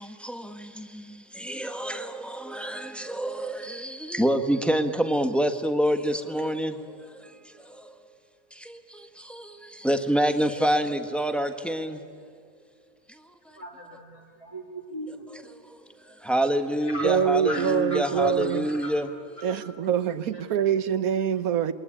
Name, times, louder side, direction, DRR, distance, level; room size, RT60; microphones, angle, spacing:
voice 1, 1.5-2.1 2.5-3.8 4.1-6.7 9.8-12.0 16.3-19.1, equal, ahead, 1.3 m, -25 dB
voice 2, 13.5-15.3 16.9-17.0 17.4-18.3 18.8-18.9, equal, 20° left, 3.1 m, -38 dB
voice 3, 17.0-18.6 19.4-21.7, right 8 dB, 80° right, 1.4 m, -25 dB
27.5 x 21.5 x 10.0 m
omnidirectional pair, 1.5 m